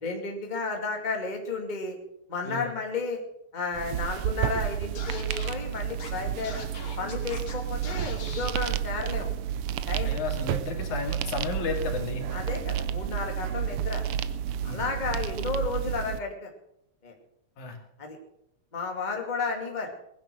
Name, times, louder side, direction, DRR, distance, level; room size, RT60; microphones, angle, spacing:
voice 1, 0.0-2.0 2.3-3.2 3.5-6.6 7.0-9.3 9.9-10.1 12.3-14.0 14.6-16.5 17.0-17.1 18.0-18.2 18.7-19.9, left 4 dB, 15° left, 2 dB, 2.2 m, -32 dB
sound 1, 3.7-16.2, right 10 dB, 85° right, 1.2 m, -31 dB
Scratching (performance technique), 4.9-5.5 6.0-6.1 6.4-7.5 7.8-8.5, left 4 dB, 45° left, 3.1 m, -41 dB
voice 2, 10.1-12.3 14.7-14.8 17.6-17.8, left 4 dB, 80° left, 3 dB, 3.8 m, -33 dB
19.5 x 10.5 x 6.2 m, 0.78 s
omnidirectional pair, 3.4 m